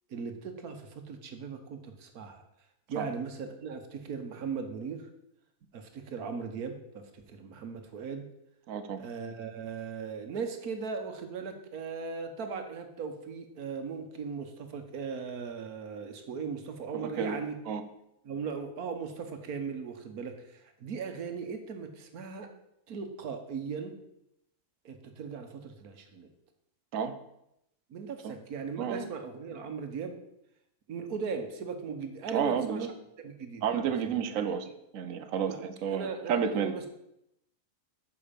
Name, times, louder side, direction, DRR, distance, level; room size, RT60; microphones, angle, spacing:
voice 1, 0.1-2.4 2.9-5.1 5.7-8.3 9.0-17.6 18.2-22.5 22.9-23.9 24.8-26.3 27.9-30.2 30.9-32.9 33.2-34.2 35.5-35.6 35.9-36.9, right 5 dB, 80° right, 6 dB, 1.6 m, -38 dB
voice 2, 8.7-9.0 17.0-17.4 17.7-17.8 26.9-27.1 28.2-28.3 28.8-29.1 32.3-32.9 33.6-34.7 34.9-36.8, right 7 dB, 65° right, 9 dB, 1.2 m, -31 dB
8.8 x 6.5 x 5.2 m, 0.81 s
omnidirectional pair, 1.5 m